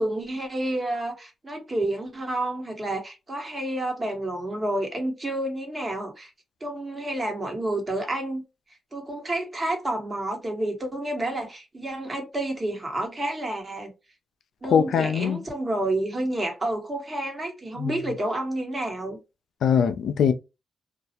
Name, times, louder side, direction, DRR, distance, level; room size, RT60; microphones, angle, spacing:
voice 1, 0.0-6.3 6.6-8.4 8.9-13.9 14.6-19.2, right 1 dB, 30° right, 1.1 m, -29 dB
voice 2, 14.6-15.4 17.8-18.0 19.6-20.3, left 7 dB, 80° left, 0.3 m, -22 dB
2.3 x 2.0 x 2.8 m
cardioid pair, 65°, 0 cm